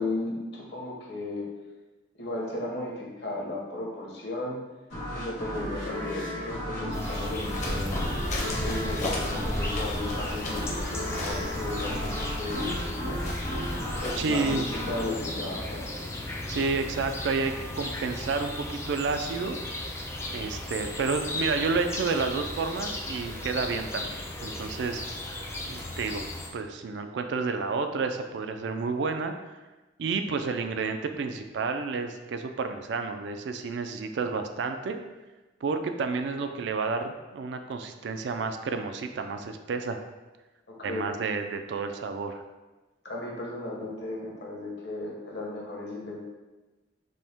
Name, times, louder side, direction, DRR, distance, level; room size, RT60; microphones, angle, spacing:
voice 1, 0.0-1.5 2.2-4.6 5.1-8.1 8.6-13.2 14.0-15.9 40.7-41.2 43.0-46.2, left 2 dB, 60° left, -3 dB, 1.0 m, -35 dB
sound 1, 4.9-16.4, equal, 80° left, 1.4 m, -35 dB
sound 2, 6.9-26.5, left 1 dB, 15° left, 0.3 m, -36 dB
sound 3, 7.3-14.2, left 1 dB, 40° left, 0.7 m, -34 dB
voice 2, 14.2-14.7 16.5-19.6 20.3-25.0 25.7-26.3 26.5-29.3 30.0-35.0 35.6-40.0 40.8-42.4, right 4 dB, 65° right, 7 dB, 0.3 m, -30 dB
5.2 x 2.1 x 3.5 m, 1.2 s
head